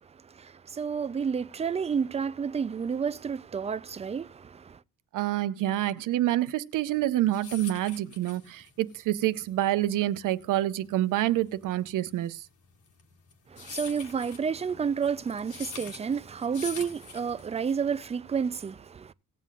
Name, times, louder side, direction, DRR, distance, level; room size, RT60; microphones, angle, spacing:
voice 1, 0.0-4.8 13.5-19.1, right 6 dB, 20° right, 0.4 m, -30 dB
voice 2, 5.1-12.4, right 14 dB, 75° right, 0.8 m, -27 dB
sound 1, 7.0-17.8, left 6 dB, 65° left, 2.0 m, -44 dB
19.0 x 7.5 x 2.4 m
cardioid pair, 135°, 32 cm